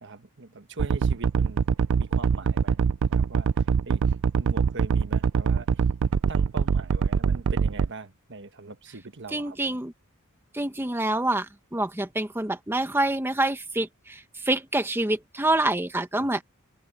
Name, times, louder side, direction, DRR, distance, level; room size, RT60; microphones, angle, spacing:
voice 1, 0.0-1.6 2.0-3.5 3.8-5.7 6.3-9.8 16.2-16.4, right 3 dB, 55° right, 1.3 m, -41 dB
sound 1, 0.8-7.9, right 6 dB, 75° right, 0.4 m, -23 dB
voice 2, 9.3-9.9 10.5-11.5 11.7-14.2 14.4-16.4, right 2 dB, 10° right, 0.9 m, -26 dB
head